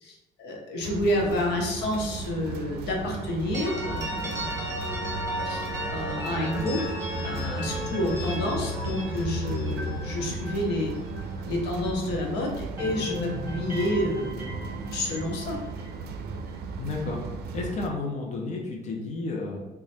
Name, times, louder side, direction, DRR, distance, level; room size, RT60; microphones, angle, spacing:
voice 1, 0.0-4.7 5.4-6.8 7.2-10.9 11.5-14.5 14.9-15.6, left 1 dB, 80° left, 0 dB, 0.8 m, -29 dB
sound 1, 0.8-17.9, right 4 dB, 70° right, 0.4 m, -37 dB
sound 2, 3.5-12.3 12.6-16.7, equal, 15° right, 1.1 m, -34 dB
voice 2, 16.8-17.2 17.5-19.7, left 3 dB, 45° left, -1 dB, 0.7 m, -32 dB
3.1 x 2.3 x 4.1 m, 0.98 s
cardioid pair, 110°, 17 cm